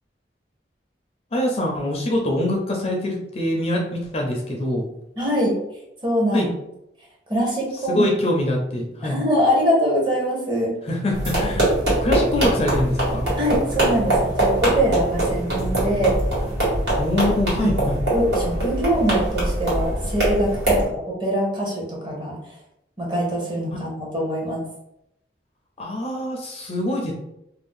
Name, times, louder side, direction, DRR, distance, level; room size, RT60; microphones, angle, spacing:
voice 1, 1.3-4.9 6.3-6.5 7.9-9.2 10.8-11.7 12.0-13.2 17.0-18.0 25.8-27.1, left 1 dB, 35° left, 0 dB, 0.4 m, -24 dB
voice 2, 5.2-5.5 6.0-6.5 7.3-8.1 9.0-10.8 13.4-16.2 17.6-17.8 18.1-22.5 23.0-24.6, equal, 25° right, -3 dB, 0.8 m, -23 dB
sound 1, 11.1-20.9, right 1 dB, 65° right, 1.4 m, -22 dB
2.5 x 2.0 x 3.5 m, 0.82 s
head